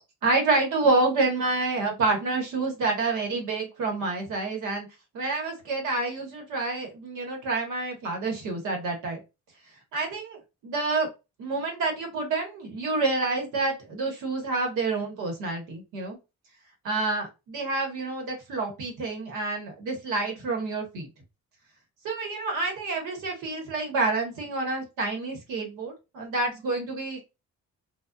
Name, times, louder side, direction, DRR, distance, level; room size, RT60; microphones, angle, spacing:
voice 1, 0.2-4.9 5.1-9.2 9.9-11.1 11.4-16.2 16.8-21.1 22.0-27.2, right 3 dB, 85° right, 1.1 m, -28 dB
2.4 x 2.2 x 2.3 m
cardioid pair, 90°, 30 cm